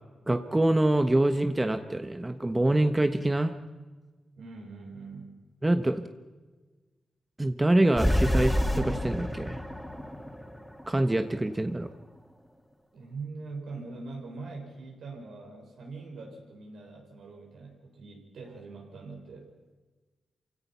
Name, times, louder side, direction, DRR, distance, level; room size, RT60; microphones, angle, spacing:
voice 1, 0.3-3.5 5.6-6.0 7.4-9.6 10.9-11.9, right 1 dB, 20° right, 8 dB, 1.2 m, -25 dB
voice 2, 4.3-5.4 12.9-19.5, right 3 dB, 80° right, 0 dB, 6.3 m, -42 dB
sound 1, 8.0-11.4, equal, 5° left, 2.5 m, -28 dB
28.0 x 17.0 x 5.8 m, 1.3 s
cardioid pair, 55°, 0 cm